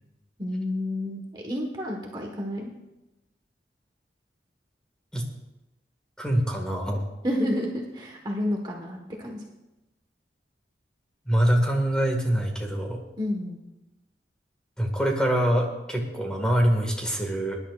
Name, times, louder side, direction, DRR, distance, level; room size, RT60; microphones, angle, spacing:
voice 1, 0.4-2.7 7.2-9.4 13.2-13.6, left 1 dB, 25° right, 0 dB, 1.3 m, -30 dB
voice 2, 6.2-7.0 11.2-13.0 14.8-17.6, right 1 dB, 5° left, 1 dB, 1.8 m, -24 dB
22.5 x 11.0 x 2.4 m, 1.0 s
head